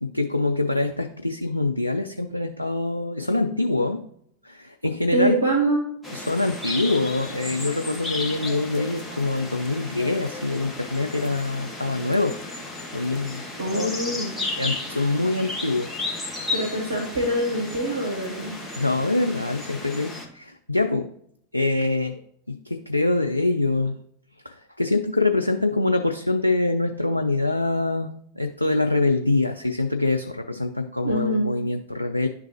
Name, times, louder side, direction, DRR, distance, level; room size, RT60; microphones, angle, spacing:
voice 1, 0.0-4.1 4.4-5.5 6.1-12.4 12.9-13.4 13.7-14.2 14.6-16.5 18.8-21.1 21.5-22.2 22.5-24.0 24.4-32.3, left 2 dB, 85° left, 6 dB, 0.3 m, -25 dB
voice 2, 5.1-5.9 13.6-14.3 16.5-18.6 31.0-31.5, right 1 dB, 75° right, 0 dB, 1.0 m, -24 dB
sound 1, 6.0-20.2, left 2 dB, 5° left, 1.3 m, -34 dB
11.0 x 3.7 x 2.8 m, 0.69 s
figure-of-eight pair, 90°, 0 cm